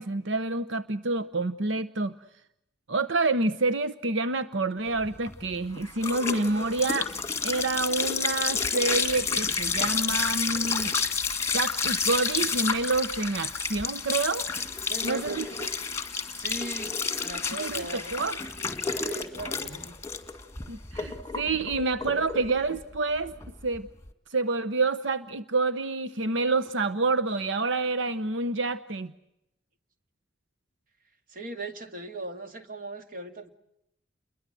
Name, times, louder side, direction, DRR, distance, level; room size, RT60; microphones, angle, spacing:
voice 1, 0.0-2.1 2.9-7.1 7.4-10.9 11.5-14.5 15.0-15.4 17.6-18.5 20.7-23.3 23.6-23.9 24.3-29.1, right 3 dB, 80° right, 13 dB, 0.9 m, -28 dB
sound 1, 5.0-24.1, left 5 dB, 15° left, 2.0 m, -30 dB
voice 2, 14.9-15.7 16.4-18.1 19.0-20.0 31.3-33.5, right 2 dB, 45° right, 6 dB, 2.3 m, -39 dB
29.5 x 22.5 x 7.6 m, 0.83 s
head